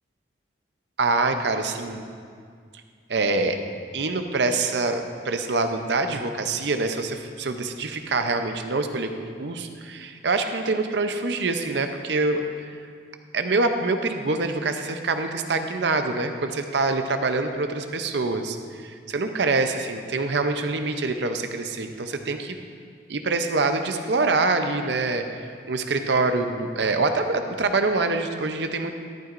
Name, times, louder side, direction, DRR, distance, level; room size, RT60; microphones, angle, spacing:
voice 1, 1.0-2.0 3.1-3.6 3.9-12.8 13.3-22.6 23.1-28.9, right 3 dB, 70° right, 7 dB, 0.6 m, -25 dB
11.5 x 11.0 x 2.6 m, 2.1 s
head